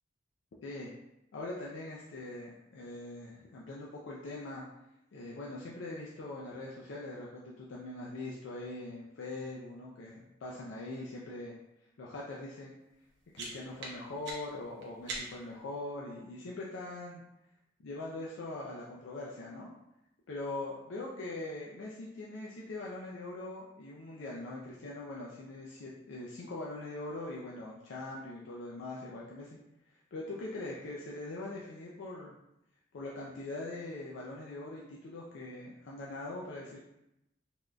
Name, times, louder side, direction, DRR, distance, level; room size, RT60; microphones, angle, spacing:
voice 1, 0.6-0.9 1.3-4.6 5.1-11.5 12.0-12.7 13.3-17.2 17.8-19.7 20.3-29.6 29.9-32.3 32.9-36.8, left 2 dB, 75° left, -4 dB, 0.4 m, -42 dB
sound 1, 12.9-15.6, right 2 dB, 65° right, 0.6 m, -44 dB
3.4 x 2.5 x 2.2 m, 0.87 s
head